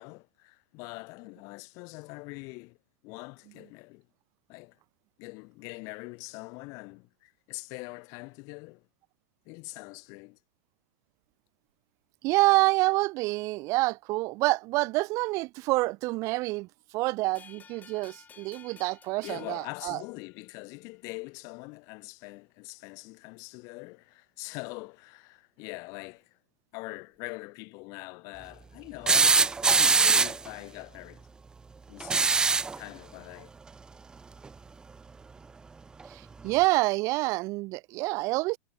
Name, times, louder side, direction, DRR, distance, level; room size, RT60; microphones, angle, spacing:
voice 1, 0.0-2.8 3.0-4.1 4.5-4.8 5.2-8.9 9.5-10.4 19.2-26.4 26.7-31.3 31.9-32.4 32.7-33.5, left 28 dB, 40° left, 4.2 m, -43 dB
voice 2, 12.2-16.7 16.9-20.0 36.1-38.6, right 22 dB, 40° right, 2.7 m, -27 dB
sound 1, 17.4-20.6, left 7 dB, 20° left, 7.6 m, -54 dB
sound 2, 29.1-30.5 32.0-32.8 34.4-34.5 36.0-36.1, right 4 dB, 10° right, 0.3 m, -22 dB
figure-of-eight pair, 95°, 8 cm